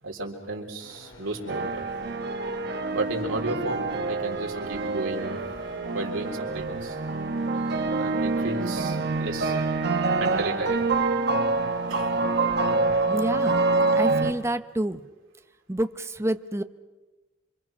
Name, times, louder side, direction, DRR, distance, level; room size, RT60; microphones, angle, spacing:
voice 1, 0.0-1.8 2.9-5.4 5.9-7.0 7.9-9.6 10.2-10.9 11.9-12.2, right 2 dB, 85° right, 1 dB, 3.7 m, -33 dB
sound 1, 0.8-14.4, left 1 dB, 70° left, 4.6 m, -50 dB
sound 2, 1.5-14.3, right 3 dB, 55° right, 1.2 m, -26 dB
voice 2, 13.1-13.6 13.9-15.0 15.7-16.6, right 1 dB, 15° right, 10 dB, 0.7 m, -28 dB
27.0 x 24.5 x 6.1 m, 1.2 s
head